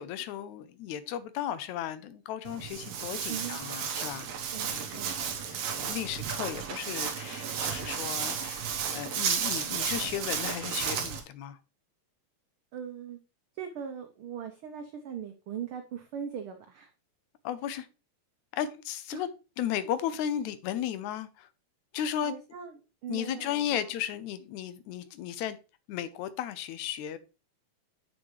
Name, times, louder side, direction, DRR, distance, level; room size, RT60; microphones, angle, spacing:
voice 1, 0.0-4.3 4.7-5.1 5.5-8.6 8.9-11.6 17.4-17.9 18.5-19.3 19.6-21.5 21.9-22.3 23.1-25.6 25.9-27.2, left 10 dB, 85° left, 2.0 m, -35 dB
Walk footsteps, 2.4-11.2, right 7 dB, 65° right, 2.0 m, -33 dB
voice 2, 4.5-5.1 6.1-6.2 12.7-13.2 13.6-16.9 19.1-19.2 22.2-23.9, right 8 dB, 90° right, 1.1 m, -40 dB
8.4 x 6.3 x 3.1 m
omnidirectional pair, 3.4 m